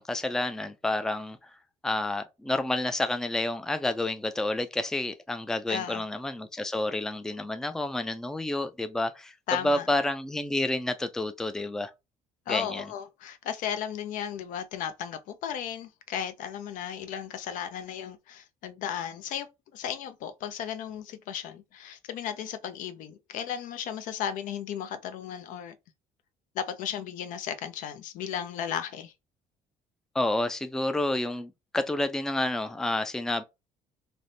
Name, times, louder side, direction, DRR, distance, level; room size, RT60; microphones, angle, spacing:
voice 1, 0.0-1.5 1.8-9.3 9.6-11.9 12.5-12.9 30.1-33.4, left 2 dB, 5° left, 0.3 m, -29 dB
voice 2, 5.7-6.0 9.5-9.9 12.5-19.5 19.7-25.8 26.5-29.1, left 9 dB, 70° left, 0.5 m, -35 dB
3.3 x 2.0 x 2.6 m
supercardioid pair, 85°, 14 cm